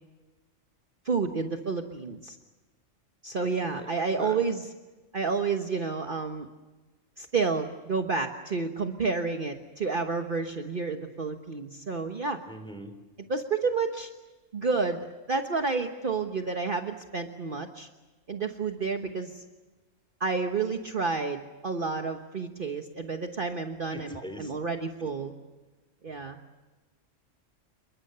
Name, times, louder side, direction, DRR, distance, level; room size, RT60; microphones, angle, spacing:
voice 1, 1.0-2.4 3.2-4.6 5.1-6.5 7.2-12.4 13.3-14.1 14.5-17.9 18.3-19.4 20.2-25.3 26.0-26.4, right 4 dB, 40° right, 5 dB, 1.3 m, -30 dB
voice 2, 12.5-12.9 23.9-24.5 25.0-25.1, equal, 5° left, 7 dB, 3.5 m, -41 dB
28.5 x 22.5 x 6.8 m, 1.2 s
omnidirectional pair, 1.4 m